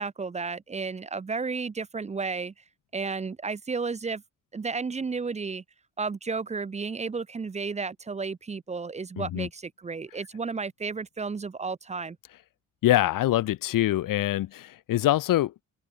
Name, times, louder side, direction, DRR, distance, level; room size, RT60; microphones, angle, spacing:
voice 1, 0.0-2.5 2.9-4.2 4.5-5.6 6.0-12.2, right 4 dB, 20° right, 0.7 m, -32 dB
voice 2, 9.2-9.5 12.8-15.6, left 14 dB, 85° left, 0.8 m, -24 dB
open air
wide cardioid pair, 170°, 32 cm